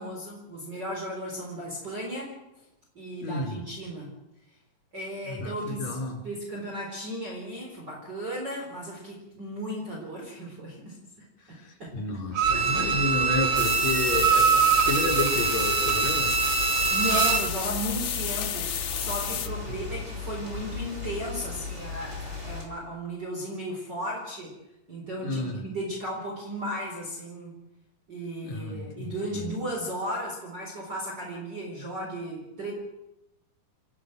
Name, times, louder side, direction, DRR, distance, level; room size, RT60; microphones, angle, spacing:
voice 1, 0.0-2.3 2.9-4.1 4.9-11.0 11.5-11.9 12.5-13.0 16.9-24.5 24.9-27.5 28.1-32.7, equal, 30° right, -3 dB, 4.5 m, -35 dB
voice 2, 3.2-3.6 5.3-6.2 11.5-16.3 25.2-25.6 28.4-29.4, left 2 dB, 55° left, 2 dB, 5.3 m, -31 dB
Bowed string instrument, 12.3-17.6 17.9-18.0, right 6 dB, 80° right, 3.3 m, -24 dB
sound 1, 12.4-22.7, left 4 dB, 15° right, 5.1 m, -36 dB
sound 2, 13.6-19.5, left 9 dB, 75° left, 1.1 m, -32 dB
29.5 x 14.0 x 6.4 m, 0.89 s
omnidirectional pair, 3.9 m